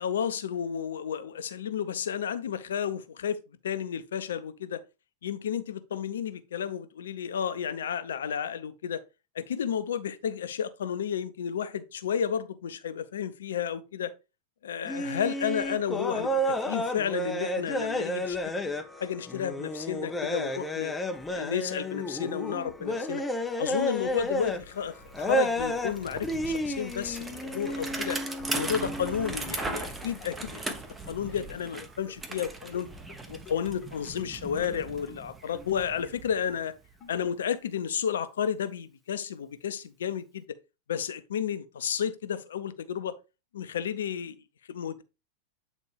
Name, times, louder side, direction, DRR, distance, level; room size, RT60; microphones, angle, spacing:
voice 1, 0.0-3.4 3.6-4.8 5.2-9.0 9.3-14.1 14.6-18.7 19.0-20.9 21.3-23.2 23.6-28.2 28.5-30.6 31.1-32.9 33.3-36.7 37.1-40.6 40.9-43.1 43.5-44.4 44.7-45.0, left 8 dB, 65° left, 0.7 m, -32 dB
sound 1, 14.9-24.8 25.1-26.0 26.2-29.5 29.8-30.0, equal, 10° left, 0.7 m, -31 dB
Bicycle, 23.7-23.8 24.1-37.0, right 2 dB, 15° right, 1.1 m, -39 dB
sound 2, 26.9-32.1 32.4-32.5 32.7-32.8 33.1-33.2 33.5-33.6 33.8-33.9 34.2-34.3 34.6-34.7 35.1-35.2 35.5-35.6 36.0-36.1 36.5-36.6 37.0-37.1, left 9 dB, 35° left, 1.0 m, -50 dB
8.6 x 4.1 x 3.4 m
figure-of-eight pair, 90°, 0 cm